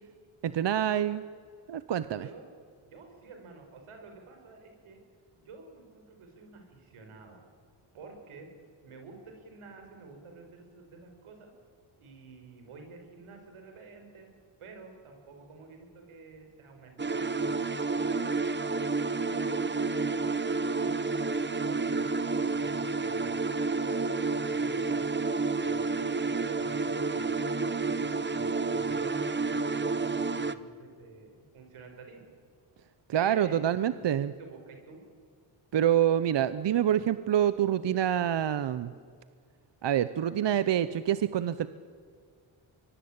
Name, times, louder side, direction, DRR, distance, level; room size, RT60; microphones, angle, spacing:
voice 1, 0.4-1.2 1.7-2.3 33.1-34.3 35.7-38.9 39.8-41.7, right 10 dB, 60° right, 14 dB, 0.9 m, -26 dB
voice 2, 2.1-2.4 2.8-5.0 5.4-7.5 7.9-8.5 8.8-11.5 12.0-14.3 14.6-17.5 18.1-18.4 19.0-21.0 21.4-25.1 25.6-32.3 33.1-33.6 33.8-35.0, right 4 dB, 85° right, 4 dB, 5.3 m, -50 dB
sound 1, 17.0-30.5, right 3 dB, 20° right, 1.0 m, -30 dB
24.0 x 23.0 x 8.8 m, 2.1 s
cardioid pair, 80°, 49 cm